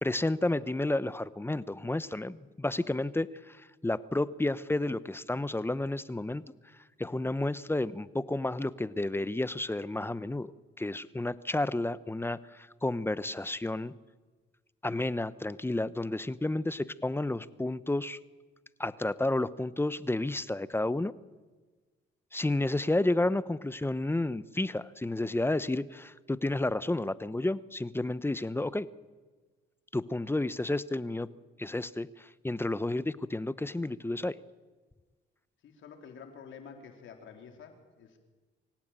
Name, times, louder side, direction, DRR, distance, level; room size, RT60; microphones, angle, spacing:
voice 1, 0.0-3.6 3.8-6.4 7.0-10.5 10.8-13.9 14.8-18.2 18.8-21.1 22.3-28.9 29.9-31.3 31.6-34.4, left 2 dB, 10° left, 16 dB, 0.9 m, -31 dB
voice 2, 35.6-38.2, left 6 dB, 75° left, 4 dB, 4.0 m, -49 dB
25.5 x 16.5 x 9.1 m, 1.3 s
cardioid pair, 90°, 20 cm